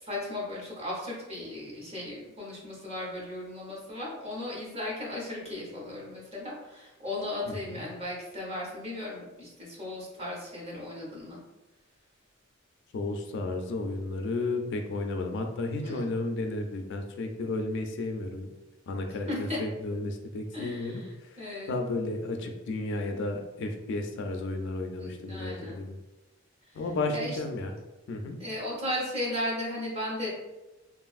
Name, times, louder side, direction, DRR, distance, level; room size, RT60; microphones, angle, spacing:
voice 1, 0.0-11.4 15.8-16.1 19.3-19.6 20.5-21.7 25.0-25.9 27.1-27.4 28.4-30.3, left 1 dB, 30° right, -3 dB, 0.9 m, -36 dB
voice 2, 7.5-7.8 12.9-18.5 18.9-26.0 26.7-27.7 28.1-28.4, left 2 dB, 60° left, 4 dB, 0.3 m, -33 dB
3.1 x 2.4 x 2.4 m, 1.1 s
head